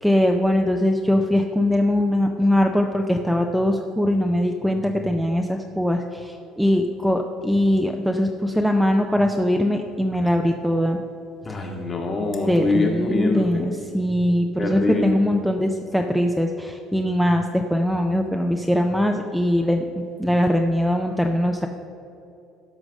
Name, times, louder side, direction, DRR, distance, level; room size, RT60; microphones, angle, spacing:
voice 1, 0.0-11.0 12.5-21.7, left 1 dB, ahead, 3 dB, 0.5 m, -21 dB
voice 2, 11.4-13.6 14.5-15.2, left 3 dB, 25° left, 1 dB, 1.6 m, -24 dB
12.5 x 4.8 x 6.3 m, 2.8 s
cardioid pair, 130°, 0 cm